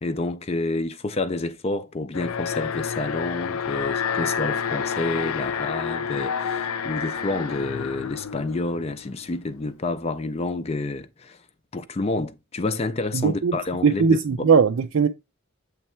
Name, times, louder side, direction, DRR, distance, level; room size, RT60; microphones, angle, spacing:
voice 1, 0.0-11.4 11.7-14.5, left 2 dB, 30° left, 0.4 m, -29 dB
Alarm, 2.1-9.2, left 7 dB, 85° left, 0.5 m, -29 dB
voice 2, 13.1-13.5 13.8-15.1, right 5 dB, 65° right, 0.4 m, -19 dB
7.2 x 3.3 x 4.3 m
head